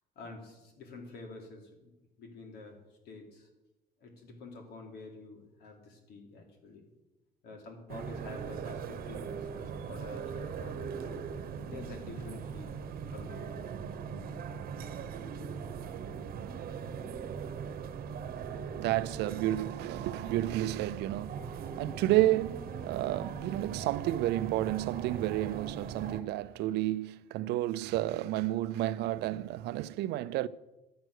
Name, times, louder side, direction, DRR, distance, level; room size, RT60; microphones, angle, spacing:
voice 1, 0.1-1.9 2.2-2.8 3.0-3.5 4.0-6.9 7.4-11.2 11.7-12.7 13.1-13.6, left 3 dB, 75° left, 3.3 m, -48 dB
sound 1, 7.9-26.2, right 6 dB, 60° right, 1.0 m, -40 dB
voice 2, 18.7-30.5, right 15 dB, 80° right, 0.5 m, -31 dB
12.0 x 9.1 x 6.4 m
cardioid pair, 110°, 17 cm